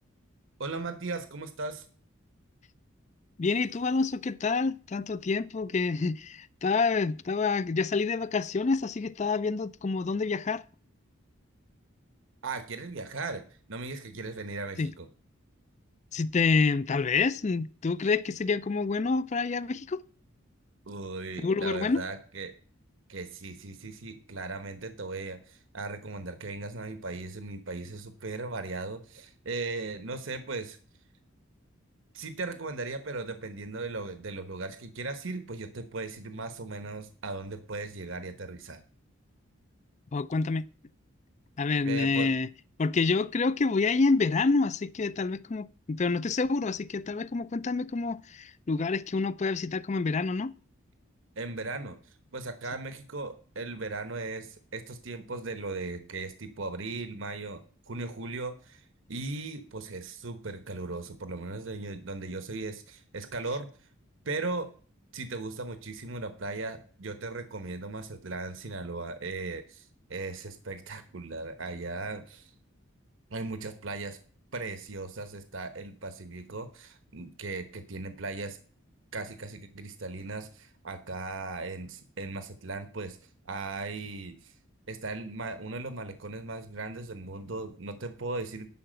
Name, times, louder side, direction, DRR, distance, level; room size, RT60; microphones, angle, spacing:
voice 1, 0.6-1.9 12.4-15.1 20.9-22.5 23.1-30.8 32.1-38.8 41.8-42.3 51.4-57.6 57.9-63.7 64.2-64.7 65.1-72.5 73.3-74.2 74.5-78.6 79.1-83.2 83.4-84.5 84.9-88.7, right 3 dB, 70° right, 1.1 m, -37 dB
voice 2, 3.4-10.6 14.8-14.9 16.1-20.0 21.4-22.0 40.1-40.7 41.6-42.5 42.8-50.5, left 4 dB, 35° left, 0.4 m, -27 dB
11.5 x 4.8 x 7.7 m
head